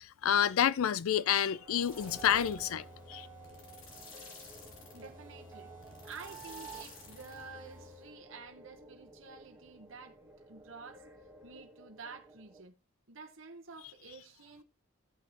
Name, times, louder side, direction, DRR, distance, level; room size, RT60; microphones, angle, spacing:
voice 1, 0.0-3.3, left 9 dB, 90° left, 0.4 m, -29 dB
sound 1, 1.3-12.6, right 3 dB, 15° right, 1.3 m, -52 dB
sound 2, 1.8-8.1, left 3 dB, 70° left, 2.9 m, -53 dB
voice 2, 4.9-5.7 6.0-10.2 10.5-11.1 11.4-12.7 13.1-14.6, right 4 dB, 65° right, 1.0 m, -50 dB
15.0 x 5.9 x 2.9 m
head